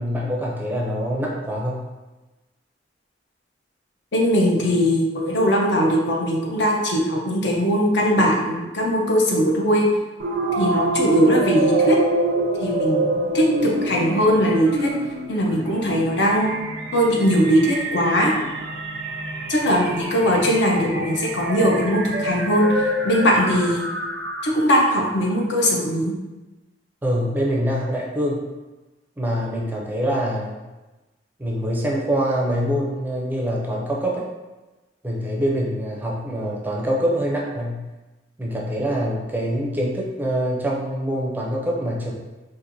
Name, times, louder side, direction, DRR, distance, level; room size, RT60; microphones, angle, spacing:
voice 1, 0.0-1.8 27.0-28.4 29.2-30.6 31.4-34.3 35.0-37.8 38.4-42.1, equal, 10° right, -3 dB, 0.4 m, -24 dB
voice 2, 4.1-9.8 10.6-12.0 12.6-14.9 15.3-16.6 16.9-18.3 19.5-22.7 23.0-23.9 24.4-26.1, equal, 70° left, -1 dB, 0.7 m, -20 dB
sound 1, 10.2-24.8, right 2 dB, 70° right, 0.4 m, -26 dB
4.2 x 2.5 x 2.6 m, 1.1 s
head